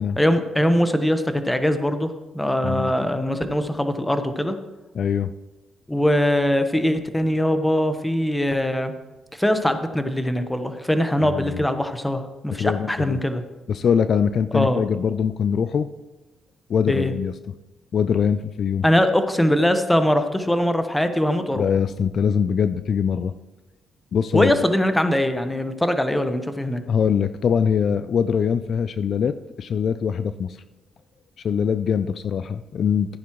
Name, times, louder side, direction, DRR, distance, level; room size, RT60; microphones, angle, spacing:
voice 1, 0.2-2.1 2.3-4.5 5.9-8.9 9.3-13.4 14.5-14.8 16.9-17.1 18.8-21.6 24.3-26.8, equal, 5° left, 8 dB, 1.0 m, -22 dB
voice 2, 4.9-5.3 11.2-11.6 12.6-13.2 13.7-15.9 16.7-17.5 17.9-18.8 21.5-23.3 24.1-24.6 26.9-30.6 31.4-33.2, left 7 dB, 55° left, 12 dB, 0.4 m, -22 dB
14.5 x 9.4 x 3.1 m, 1.1 s
cardioid pair, 90°, 0 cm